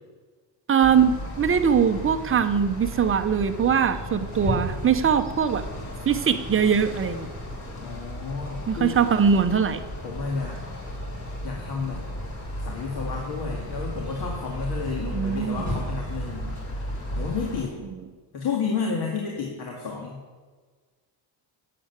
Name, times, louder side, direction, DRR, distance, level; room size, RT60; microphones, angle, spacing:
voice 1, 0.7-5.6 6.1-7.3 8.7-9.8 15.0-15.7, right 7 dB, 30° right, 9 dB, 0.8 m, -22 dB
sound 1, 0.8-17.6, equal, 40° left, 3.0 m, -34 dB
voice 2, 7.8-9.0 10.0-10.6 11.4-12.0 12.6-16.5 17.2-17.8 18.3-20.2, left 5 dB, 55° left, 0 dB, 2.1 m, -31 dB
11.5 x 7.7 x 9.5 m, 1.4 s
cardioid pair, 165°, 45 cm